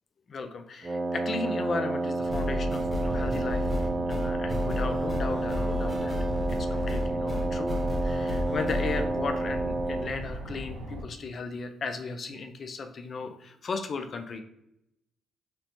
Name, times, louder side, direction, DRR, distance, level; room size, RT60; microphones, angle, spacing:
voice 1, 0.3-3.7 4.1-6.2 6.5-7.8 8.0-14.4, left 4 dB, 50° left, 6 dB, 0.4 m, -36 dB
Wind instrument woodwind instrument, 0.8-10.2, right 2 dB, 30° right, 0.3 m, -30 dB
sound 1, 2.2-11.0, equal, 80° right, 0.6 m, -38 dB
sound 2, 2.3-9.0, left 1 dB, 15° left, 1.0 m, -32 dB
4.1 x 2.0 x 2.9 m, 0.80 s
cardioid pair, 90°, 0 cm